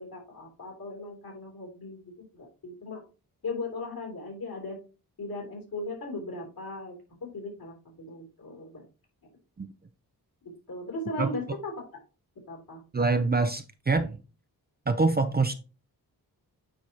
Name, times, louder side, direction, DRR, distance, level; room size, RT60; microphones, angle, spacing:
voice 1, 0.0-3.0 3.4-4.8 5.2-8.8 10.4-11.8 12.5-12.8 14.0-14.1, left 2 dB, 65° left, 2.9 m, -38 dB
voice 2, 12.9-14.2 14.9-15.5, right 3 dB, 25° right, 0.5 m, -25 dB
8.9 x 4.7 x 2.8 m
wide cardioid pair, 115°, 38 cm